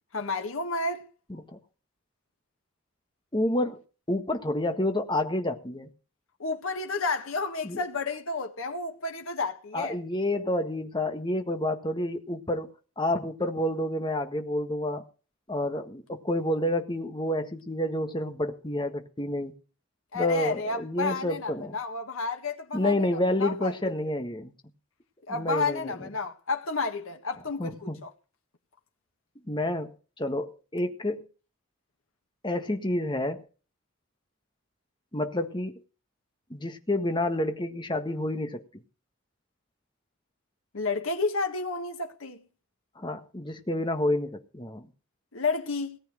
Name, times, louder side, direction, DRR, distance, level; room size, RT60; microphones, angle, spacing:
voice 1, 0.1-1.0 6.4-10.0 20.1-23.7 24.0-24.1 25.3-28.1 40.7-42.4 45.3-46.0, left 3 dB, 90° left, 1.7 m, -31 dB
voice 2, 3.3-3.8 4.1-5.9 7.6-7.8 9.7-15.1 15.5-19.5 20.1-21.7 22.7-24.5 25.3-25.9 27.6-28.0 29.5-31.2 32.4-33.4 35.1-35.7 36.5-38.6 43.0-44.9, left 1 dB, 20° left, 1.5 m, -29 dB
18.0 x 8.5 x 5.0 m
head